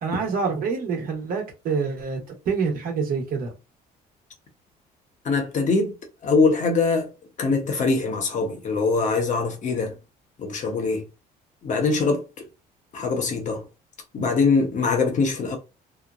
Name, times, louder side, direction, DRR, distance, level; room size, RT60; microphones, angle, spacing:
voice 1, 0.0-3.5, right 5 dB, 60° right, 1.1 m, -26 dB
voice 2, 5.2-5.9 6.2-7.1 7.4-9.9 10.4-11.0 11.6-12.2 12.9-13.6 14.1-15.6, left 4 dB, 45° left, 0.9 m, -22 dB
2.9 x 2.1 x 2.4 m
cardioid pair, 110°, 17 cm